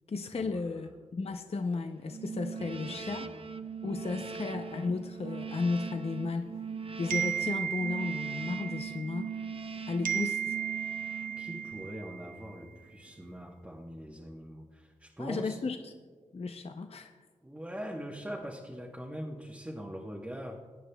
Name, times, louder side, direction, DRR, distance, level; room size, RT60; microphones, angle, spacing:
voice 1, 0.1-3.2 3.8-6.5 7.0-9.3 9.9-10.6 15.2-15.9 16.3-17.1, left 4 dB, 45° left, 6 dB, 0.5 m, -34 dB
sound 1, 2.1-12.0, right 5 dB, 40° right, 0.4 m, -40 dB
voice 2, 2.6-3.5 4.1-4.3 11.4-15.6 17.4-20.7, equal, 10° right, -2 dB, 1.0 m, -42 dB
sound 2, 7.1-9.7 10.0-12.6, right 9 dB, 85° right, 0.9 m, -35 dB
21.5 x 9.2 x 2.2 m, 1.5 s
wide cardioid pair, 85°, 14 cm